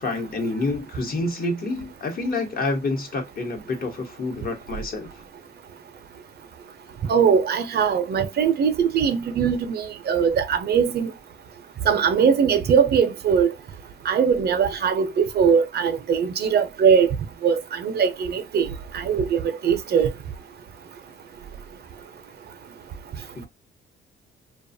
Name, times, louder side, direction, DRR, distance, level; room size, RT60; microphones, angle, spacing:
voice 1, 0.0-5.2 23.4-23.5, left 2 dB, 50° left, 1.0 m, -28 dB
voice 2, 7.1-11.1 11.9-13.5 14.1-17.1 17.4-18.7 18.9-20.1, right 7 dB, 55° right, 0.5 m, -21 dB
2.4 x 2.2 x 2.6 m
cardioid pair, 90°, 20 cm